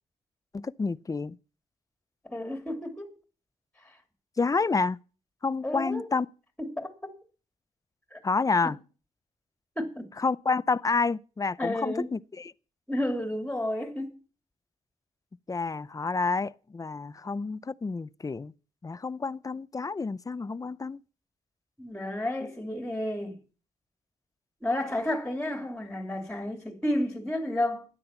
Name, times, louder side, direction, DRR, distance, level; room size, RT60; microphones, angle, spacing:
voice 1, 0.5-1.4 4.4-5.0 5.4-6.3 8.2-8.8 10.2-12.5 15.5-18.5 18.8-21.0, left 4 dB, 25° left, 0.6 m, -29 dB
voice 2, 2.2-3.1 3.8-4.0 5.6-6.1 6.6-7.1 8.1-8.2 9.8-10.1 11.6-12.1 12.9-14.2 21.8-23.4 24.6-27.8, left 1 dB, 5° left, 2.9 m, -31 dB
13.0 x 9.9 x 5.8 m
cardioid pair, 95°, 14 cm